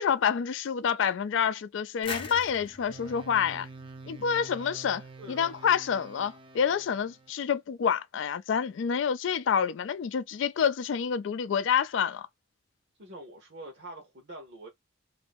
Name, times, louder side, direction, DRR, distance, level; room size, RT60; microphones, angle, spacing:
voice 1, 0.0-3.7 4.1-12.3, left 7 dB, 75° left, 0.4 m, -28 dB
sound 1, 2.0-4.7, left 5 dB, 30° left, 0.6 m, -42 dB
sound 2, 2.9-7.3, right 3 dB, 25° right, 0.4 m, -47 dB
voice 2, 5.2-5.6 13.0-14.7, right 1 dB, 55° right, 0.8 m, -45 dB
3.0 x 2.6 x 3.4 m
head